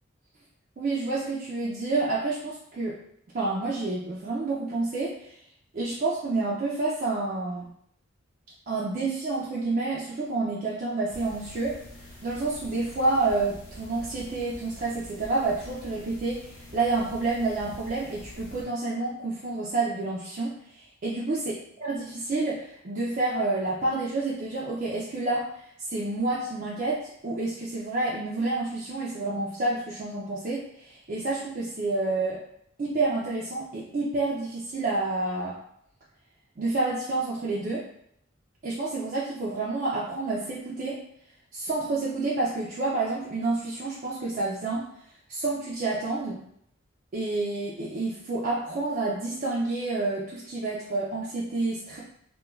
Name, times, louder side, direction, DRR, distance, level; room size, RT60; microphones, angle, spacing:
voice 1, 0.8-3.0 3.3-5.3 5.7-7.6 8.7-11.8 12.2-21.4 21.8-25.5 25.9-32.4 32.8-35.6 36.6-37.8 38.6-41.0 41.5-44.9 45.3-46.4 47.1-52.0, right 3 dB, 40° right, -5 dB, 0.4 m, -29 dB
sound 1, 11.1-18.7, left 1 dB, 70° left, 0.7 m, -46 dB
2.3 x 2.2 x 3.1 m, 0.70 s
head